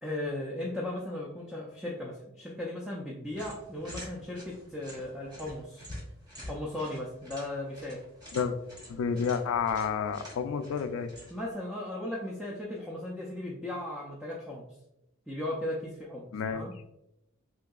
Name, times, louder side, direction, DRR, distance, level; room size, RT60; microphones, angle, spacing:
voice 1, 0.0-5.9 6.4-8.0 9.1-9.3 11.3-14.6 15.3-16.7, left 1 dB, ahead, -5 dB, 0.4 m, -37 dB
sound 1, 3.3-11.5, equal, 20° right, 1.0 m, -48 dB
voice 2, 8.9-11.1 16.3-16.7, left 6 dB, 70° left, 10 dB, 0.3 m, -30 dB
3.7 x 2.6 x 2.3 m, 0.84 s
head